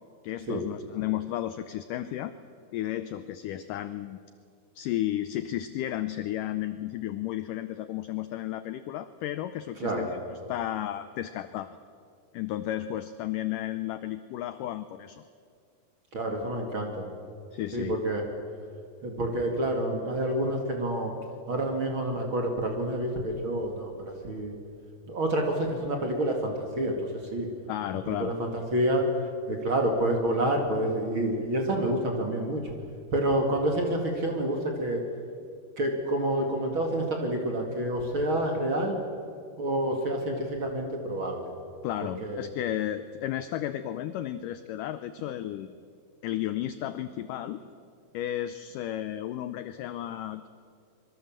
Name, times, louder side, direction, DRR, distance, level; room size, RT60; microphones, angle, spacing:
voice 1, 0.2-2.3 2.7-4.2 4.8-11.8 12.3-15.2 17.5-18.0 27.7-28.3 41.8-45.8 46.2-47.6 48.1-50.5, left 13 dB, 80° left, 11 dB, 1.9 m, -33 dB
voice 2, 16.1-17.1 17.7-18.2 19.0-21.1 21.5-24.5 25.1-27.5 28.1-29.1 29.5-32.7 33.1-35.0 35.8-39.0 39.6-41.4 42.2-42.5, right 1 dB, 40° right, 2 dB, 2.6 m, -28 dB
25.0 x 23.0 x 7.5 m, 2.3 s
omnidirectional pair, 4.5 m